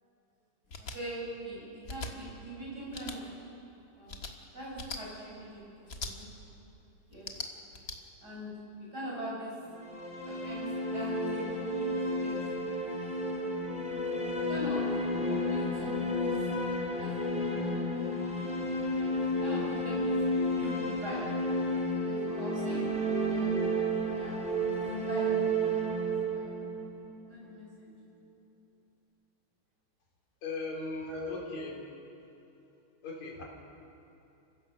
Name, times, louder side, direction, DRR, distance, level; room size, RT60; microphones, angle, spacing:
sound 1, 0.7-1.0 1.8-2.1 2.9-3.2 4.1-4.3 4.8-5.0 5.9-6.1 7.1-8.0, left 3 dB, 40° left, 1.4 m, -40 dB
voice 1, 0.8-3.3 4.0-4.3 4.5-6.5 7.1-7.3 8.2-8.5 8.9-9.5 10.3-11.9 12.2-12.4 13.2-13.5 14.5-14.9 15.3-16.5 16.9-18.5 19.0-20.2 20.5-21.3 22.0-22.8 23.1-23.6 24.0-24.4 24.8-25.4 26.0-26.5 27.3-27.9 31.0-31.3, right 1 dB, 30° right, -5 dB, 7.6 m, -42 dB
sound 2, 9.7-27.7, equal, ahead, 2.7 m, -31 dB
voice 2, 30.4-31.7 33.0-33.4, left 3 dB, 65° left, -2 dB, 4.9 m, -38 dB
30.0 x 16.5 x 6.7 m, 2.9 s
omnidirectional pair, 3.5 m